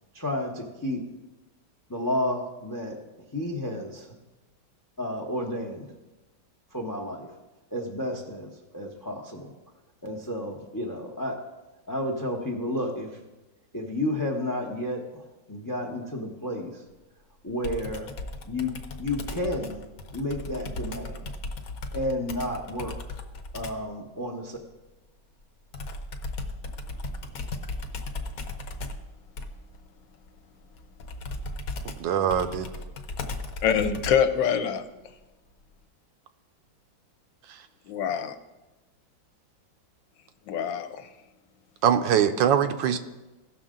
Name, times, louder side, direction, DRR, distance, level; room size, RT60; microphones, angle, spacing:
voice 1, 0.1-1.0 1.9-3.0 3.3-4.2 5.0-5.9 6.7-7.3 7.7-9.5 10.0-11.4 11.9-13.2 13.7-16.8 17.4-18.1 18.4-19.8 20.1-21.3 21.9-22.9 23.5-24.6, left 1 dB, 25° left, 1 dB, 0.4 m, -31 dB
Computer keyboard, 17.6-23.9 25.7-34.4, left 2 dB, 60° left, 1.1 m, -36 dB
voice 2, 32.0-32.7 37.5-37.6 41.8-43.0, right 9 dB, 75° right, 9 dB, 1.3 m, -22 dB
voice 3, 33.6-34.8 37.9-38.3 40.5-41.1, left 8 dB, 75° left, 9 dB, 1.3 m, -25 dB
16.5 x 6.4 x 3.7 m, 1.1 s
omnidirectional pair, 2.1 m